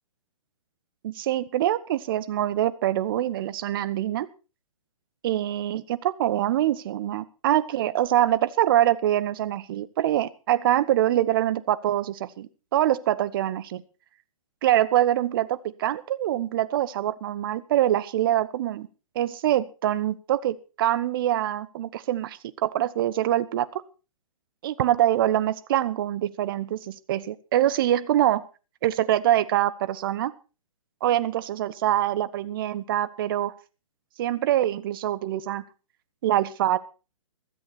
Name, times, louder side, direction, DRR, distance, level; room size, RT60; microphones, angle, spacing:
voice 1, 1.0-4.3 5.2-13.8 14.6-18.9 19.1-23.7 24.6-28.4 28.8-30.3 31.0-33.5 34.2-35.6 36.2-36.8, right 12 dB, 40° right, 16 dB, 1.1 m, -24 dB
15.5 x 14.0 x 4.3 m, 0.34 s
figure-of-eight pair, 125°, 18 cm